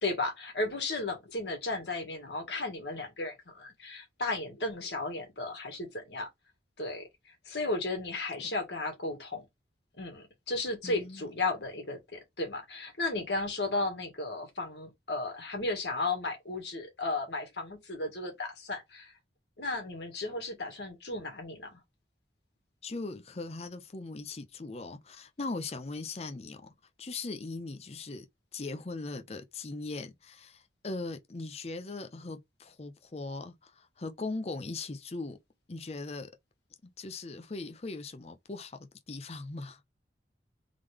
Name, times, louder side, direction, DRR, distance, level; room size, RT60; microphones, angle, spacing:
voice 1, 0.0-6.3 6.8-7.1 7.4-9.5 10.0-19.1 19.6-21.8, left 2 dB, 75° left, 1.7 m, -34 dB
voice 2, 10.8-11.3 22.8-26.6 27.0-28.3 28.5-35.4 35.7-36.3 36.8-39.8, left 3 dB, 35° left, 0.6 m, -39 dB
3.7 x 3.2 x 3.4 m
head